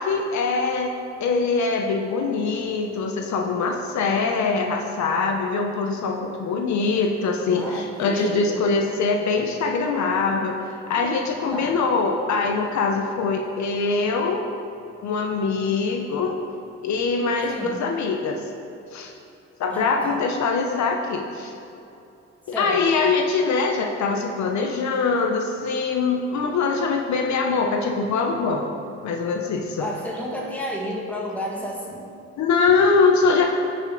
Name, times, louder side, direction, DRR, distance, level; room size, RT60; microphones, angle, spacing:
voice 1, 0.0-10.6 10.9-14.4 15.0-16.3 16.8-18.4 18.9-19.1 19.6-21.5 22.5-28.7 29.0-29.9 32.4-33.5, left 4 dB, 65° left, 3 dB, 0.8 m, -23 dB
voice 2, 7.6-8.6 11.5-11.8 17.5-17.8 19.7-20.2 22.5-23.1 29.8-32.1, equal, 5° left, -3 dB, 1.9 m, -31 dB
14.5 x 5.1 x 3.8 m, 2.8 s
cardioid pair, 90°, 30 cm